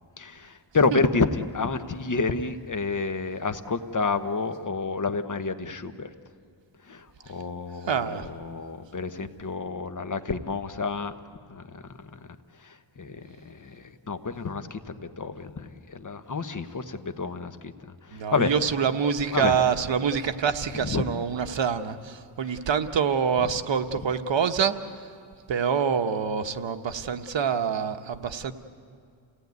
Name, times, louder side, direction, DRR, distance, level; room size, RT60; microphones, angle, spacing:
voice 1, 0.2-6.1 6.8-11.1 11.5-12.2 12.6-18.5 19.3-19.6 20.7-21.1, left 4 dB, 40° left, 9 dB, 1.1 m, -29 dB
voice 2, 7.9-8.3 18.1-25.0 25.5-28.5, right 7 dB, 70° right, 8 dB, 1.1 m, -26 dB
29.0 x 17.5 x 9.4 m, 2.2 s
wide cardioid pair, 105°, 47 cm